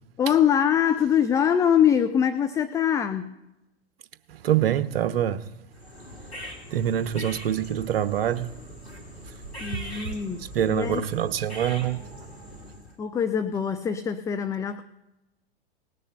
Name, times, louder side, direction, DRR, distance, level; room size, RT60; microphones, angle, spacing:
voice 1, 0.2-3.4 9.6-11.0 13.0-14.8, left 8 dB, 10° left, 0.4 m, -23 dB
voice 2, 4.3-5.4 6.7-8.5 9.7-9.8 10.4-12.0, right 10 dB, 60° right, 1.1 m, -25 dB
sound 1, 5.7-13.0, equal, 85° left, 3.7 m, -42 dB
18.5 x 6.8 x 7.8 m
figure-of-eight pair, 105°, 32 cm